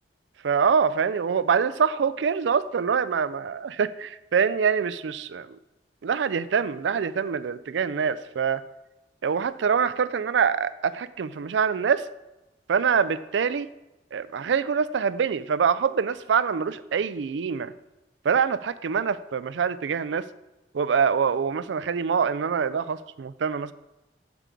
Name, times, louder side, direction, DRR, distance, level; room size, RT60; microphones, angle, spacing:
voice 1, 0.4-5.6 6.0-8.6 9.2-12.1 12.7-13.7 14.1-17.7 18.2-20.3 20.7-23.7, right 6 dB, 90° right, 15 dB, 0.4 m, -25 dB
7.5 x 4.7 x 6.9 m, 0.99 s
head